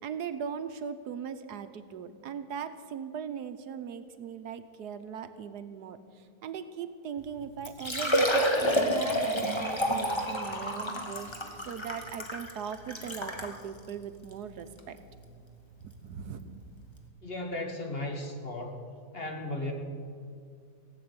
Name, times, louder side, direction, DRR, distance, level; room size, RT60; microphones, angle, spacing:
voice 1, 0.0-15.0 15.8-16.6, right 7 dB, 75° right, 10 dB, 1.3 m, -39 dB
Liquid, 7.2-7.3 7.6-13.5 14.2-14.3 14.8-14.9 16.5-16.6 16.8-16.9, equal, 15° left, 1.5 m, -29 dB
voice 2, 17.2-18.8 19.1-19.7, left 2 dB, 35° left, 3 dB, 1.9 m, -35 dB
17.0 x 7.7 x 9.6 m, 2.2 s
omnidirectional pair, 1.8 m